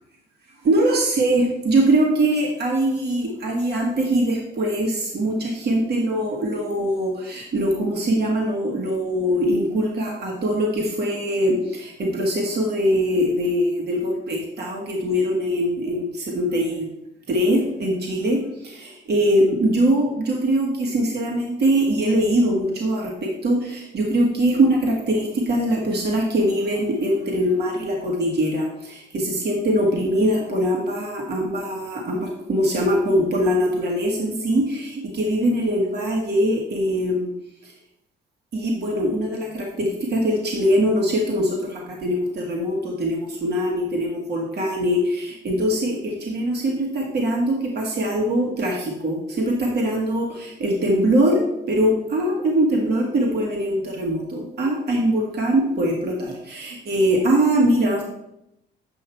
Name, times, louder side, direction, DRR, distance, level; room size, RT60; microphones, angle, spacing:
voice 1, 0.7-16.9 17.3-37.3 37.6-37.7 38.5-58.0, right 1 dB, 55° right, -1 dB, 1.8 m, -22 dB
8.9 x 5.8 x 4.5 m, 0.84 s
cardioid pair, 90°, 20 cm